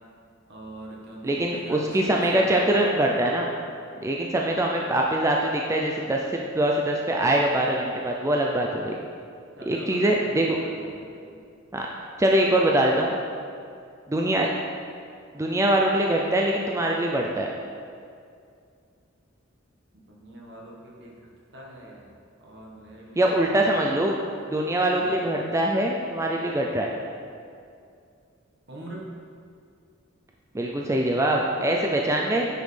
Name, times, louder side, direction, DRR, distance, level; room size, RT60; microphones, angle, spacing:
voice 1, 0.5-3.0 9.6-11.4 20.1-22.1 22.4-23.8 25.0-25.2 28.7-29.1, right 1 dB, 60° right, -3 dB, 1.4 m, -42 dB
voice 2, 1.2-3.5 4.0-9.0 9.7-10.6 11.7-11.9 12.2-13.2 14.1-14.5 15.3-17.5 23.2-24.2 24.5-26.9 30.5-32.5, right 1 dB, 15° right, -1 dB, 0.4 m, -23 dB
9.8 x 5.3 x 3.3 m, 2.4 s
head